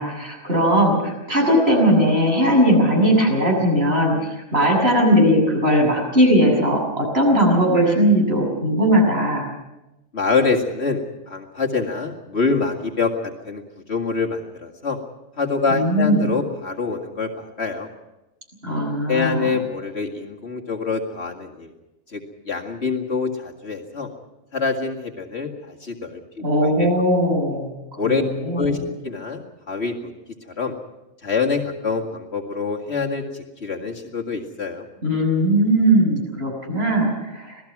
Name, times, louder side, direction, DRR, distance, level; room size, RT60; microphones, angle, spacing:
voice 1, 0.0-9.5 15.7-16.3 18.6-19.5 26.4-28.7 35.0-37.5, equal, 50° right, 0 dB, 7.2 m, -19 dB
voice 2, 10.1-13.6 13.9-15.0 15.4-17.9 19.1-21.7 22.1-22.2 22.5-24.1 24.5-26.2 26.8-26.9 28.0-28.2 28.5-28.8 29.0-30.1 30.6-30.7 31.2-34.8, left 4 dB, 55° left, 1 dB, 2.4 m, -25 dB
27.0 x 18.5 x 6.0 m, 0.98 s
omnidirectional pair, 1.3 m